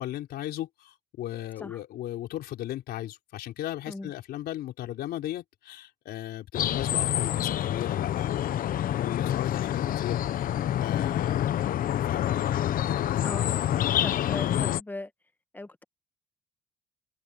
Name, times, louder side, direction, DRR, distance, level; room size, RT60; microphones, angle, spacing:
voice 1, 0.0-8.7 9.0-12.4 12.8-13.2, left 13 dB, 70° left, 4.4 m, -37 dB
sound 1, 6.5-14.8, left 11 dB, 55° left, 0.9 m, -27 dB
voice 2, 14.0-15.1 15.5-15.8, left 2 dB, 10° left, 1.4 m, -38 dB
cardioid pair, 110°, 17 cm